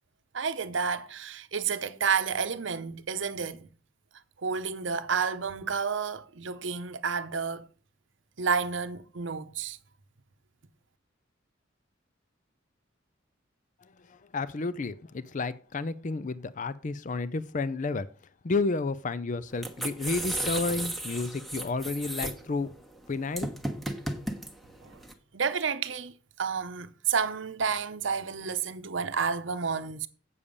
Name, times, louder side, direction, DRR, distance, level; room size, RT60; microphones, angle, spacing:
voice 1, 0.3-3.7 4.4-7.7 8.4-9.8 24.8-25.0 25.3-30.1, right 6 dB, 70° right, 0.8 m, -30 dB
voice 2, 13.8-18.1 18.4-22.7 23.1-23.5, left 3 dB, 40° left, 0.5 m, -31 dB
sound 1, 19.5-25.1, right 1 dB, ahead, 1.2 m, -34 dB
8.5 x 7.0 x 5.2 m
head